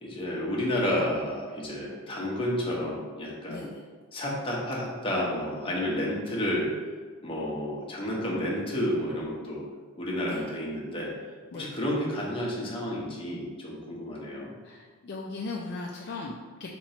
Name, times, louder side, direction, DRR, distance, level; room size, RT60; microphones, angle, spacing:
voice 1, 0.0-3.7 4.1-6.7 7.2-9.6 10.0-11.1 11.5-14.5, left 1 dB, 25° left, -3 dB, 0.8 m, -31 dB
voice 2, 3.5-3.8 10.2-10.4 11.5-11.7 14.6-16.7, left 3 dB, 50° left, -1 dB, 0.3 m, -38 dB
3.8 x 3.0 x 4.2 m, 1.5 s
head